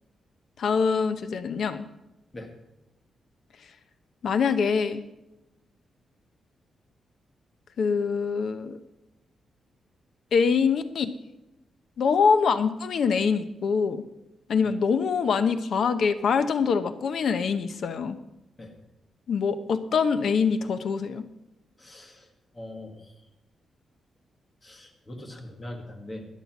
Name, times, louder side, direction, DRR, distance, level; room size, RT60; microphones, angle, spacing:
voice 1, 0.6-1.9 4.2-5.0 7.8-8.8 10.3-11.1 12.0-14.0 14.5-18.2 19.3-21.3, left 5 dB, 55° left, 10 dB, 0.8 m, -24 dB
voice 2, 21.8-22.2 22.5-23.0 24.6-26.3, left 1 dB, 20° left, 3 dB, 1.7 m, -41 dB
12.5 x 10.0 x 5.9 m, 0.94 s
wide cardioid pair, 170°, 0 cm